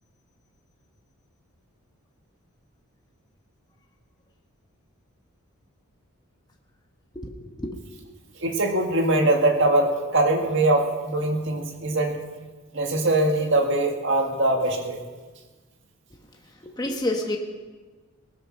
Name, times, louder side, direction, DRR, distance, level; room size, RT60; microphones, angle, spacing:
voice 1, 7.1-7.8 16.6-17.4, left 1 dB, 20° left, 1 dB, 1.2 m, -29 dB
voice 2, 8.4-12.2 12.7-15.0, right 2 dB, 55° right, 2 dB, 1.9 m, -22 dB
19.0 x 10.5 x 6.5 m, 1.3 s
head